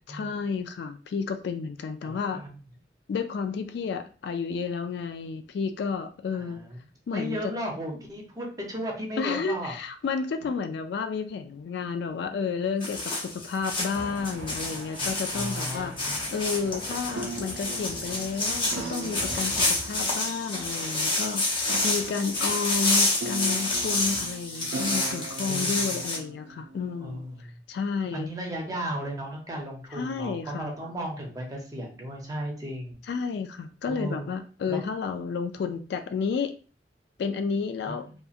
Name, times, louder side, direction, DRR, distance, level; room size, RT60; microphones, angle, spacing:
voice 1, 0.1-2.4 3.1-6.6 7.1-7.5 9.2-27.2 27.7-28.3 29.9-30.7 33.1-36.5 37.2-38.1, left 5 dB, 65° left, 8 dB, 0.3 m, -31 dB
voice 2, 2.0-2.6 6.4-6.8 7.1-9.7 15.3-16.2 25.5-25.8 27.0-27.5 28.1-33.0 33.9-34.2 34.7-34.9 37.9-38.0, equal, 20° right, 0 dB, 0.6 m, -35 dB
sound 1, 12.8-26.2, left 2 dB, 30° left, 0.7 m, -28 dB
sound 2, 13.9-19.7, right 1 dB, 70° right, 0.7 m, -45 dB
sound 3, 16.8-27.4, right 3 dB, 85° right, 0.3 m, -41 dB
2.8 x 2.3 x 2.4 m, 0.38 s
head